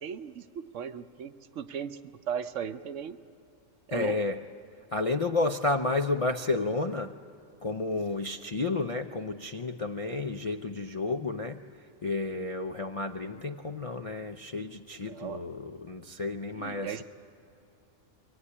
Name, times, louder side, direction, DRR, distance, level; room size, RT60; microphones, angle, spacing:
voice 1, 0.0-2.0 2.3-3.2 3.9-4.2 15.0-15.4 16.5-17.0, right 8 dB, 65° right, 10 dB, 1.0 m, -37 dB
voice 2, 3.9-4.3 4.9-7.1 7.6-11.6 12.0-17.0, left 3 dB, 45° left, 2 dB, 0.4 m, -31 dB
23.5 x 17.5 x 9.8 m, 2.7 s
omnidirectional pair, 1.4 m